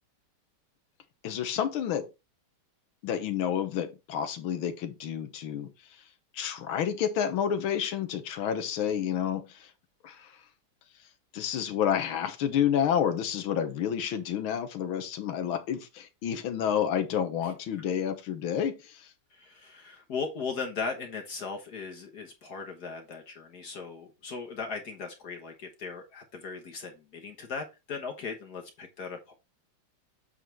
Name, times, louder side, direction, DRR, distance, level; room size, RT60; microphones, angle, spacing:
voice 1, 1.2-2.1 3.0-5.7 6.3-9.7 10.0-10.4 11.3-19.1, left 9 dB, 90° left, 1.8 m, -29 dB
voice 2, 19.3-29.3, left 5 dB, 55° left, 1.6 m, -38 dB
8.1 x 4.0 x 4.5 m
omnidirectional pair, 2.2 m